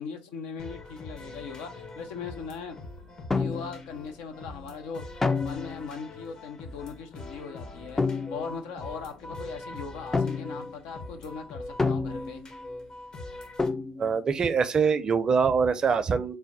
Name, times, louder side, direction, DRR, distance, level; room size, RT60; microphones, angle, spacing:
voice 1, 0.0-2.8 3.4-5.0 5.4-12.5, left 5 dB, 75° left, 0.6 m, -39 dB
sound 1, 0.6-13.7, left 2 dB, 45° left, 0.9 m, -43 dB
sound 2, 3.3-3.9 5.2-5.9 8.0-8.5 10.1-10.7 11.8-12.6 13.6-14.2, left 4 dB, 20° left, 0.4 m, -28 dB
voice 2, 14.0-16.4, right 5 dB, 40° right, 0.5 m, -24 dB
3.3 x 2.2 x 4.0 m
hypercardioid pair, 65°, 2 cm